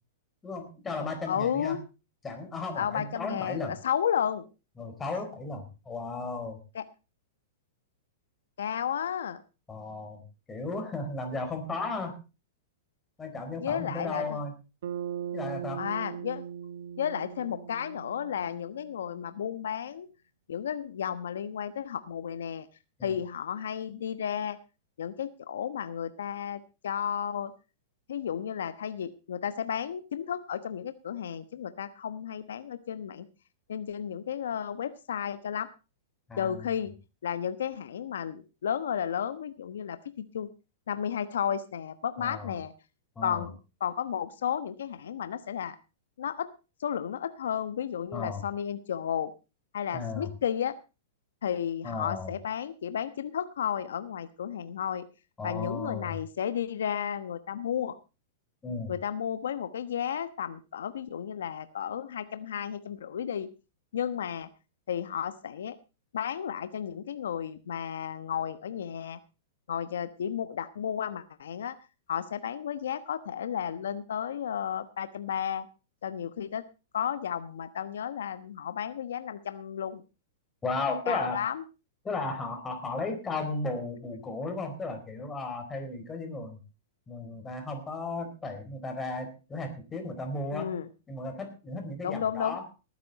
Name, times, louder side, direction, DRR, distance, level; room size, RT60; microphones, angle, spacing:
voice 1, 0.4-1.8 2.2-3.7 4.8-6.6 9.7-10.2 10.5-12.2 13.2-14.5 15.3-15.8 23.0-23.2 36.3-36.7 42.2-42.5 43.2-43.5 48.1-48.4 49.9-50.3 51.8-52.3 55.4-56.2 58.6-58.9 80.6-81.4 82.0-86.6 87.1-90.7 91.1-92.6, left 3 dB, 15° left, 5 dB, 4.3 m, -35 dB
voice 2, 1.3-1.8 2.7-4.4 6.7-6.9 8.6-9.4 13.6-14.4 15.8-16.4 17.0-20.1 20.5-22.7 23.0-24.6 25.0-27.5 28.1-33.2 33.7-35.7 36.4-36.9 37.2-40.5 40.9-42.7 43.2-45.8 46.2-46.5 46.8-49.3 49.7-50.7 51.4-55.0 55.4-58.0 58.9-63.5 63.9-64.5 64.9-65.8 66.1-69.2 69.7-71.8 72.1-75.7 76.0-76.6 76.9-80.0 81.1-81.6 90.5-90.9 92.0-92.6, left 8 dB, 85° left, 12 dB, 1.1 m, -33 dB
Bass guitar, 14.8-19.2, right 8 dB, 75° right, 1.7 m, -39 dB
19.0 x 9.7 x 4.1 m, 0.31 s
hypercardioid pair, 145°, 0 cm